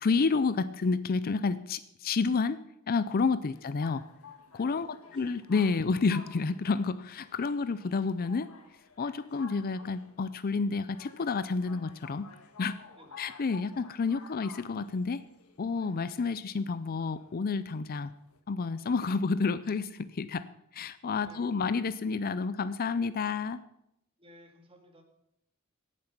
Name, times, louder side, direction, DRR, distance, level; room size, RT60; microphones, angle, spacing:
voice 1, 0.0-4.0 4.5-8.5 9.0-12.3 12.6-12.8 13.2-15.2 15.6-18.1 18.5-20.4 20.7-23.6, left 4 dB, 45° left, 15 dB, 0.5 m, -30 dB
sound 1, 3.5-18.4, left 4 dB, 90° left, 1.5 m, -53 dB
voice 2, 4.8-5.3 13.0-13.3 21.2-21.6 24.2-25.0, equal, 25° right, 3 dB, 2.1 m, -56 dB
17.5 x 7.5 x 5.9 m, 0.82 s
head